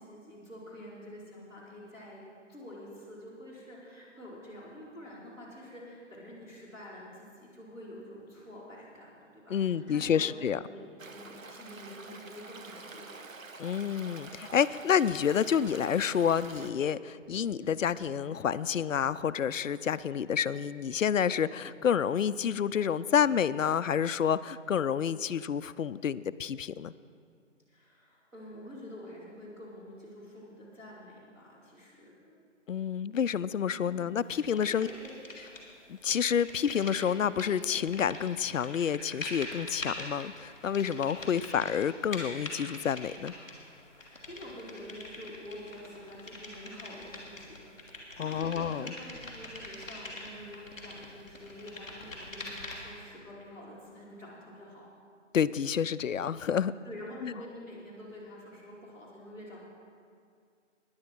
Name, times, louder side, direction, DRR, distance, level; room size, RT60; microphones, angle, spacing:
voice 1, 0.0-2.2 2.5-13.2 27.7-32.4 33.8-34.1 34.7-35.1 44.0-47.6 47.9-54.9 56.8-59.6, left 1 dB, 10° right, -12 dB, 3.0 m, -47 dB
voice 2, 9.5-10.6 13.6-26.9 32.7-34.9 35.9-43.3 48.2-48.9 55.3-56.7, left 8 dB, 75° left, 16 dB, 0.5 m, -29 dB
Stream, 11.0-16.7, right 3 dB, 90° right, 1.1 m, -47 dB
sound 1, 34.3-35.7 36.0-53.0, left 2 dB, 5° left, 1.4 m, -44 dB
16.0 x 10.5 x 4.5 m, 2.3 s
figure-of-eight pair, 170°, 39 cm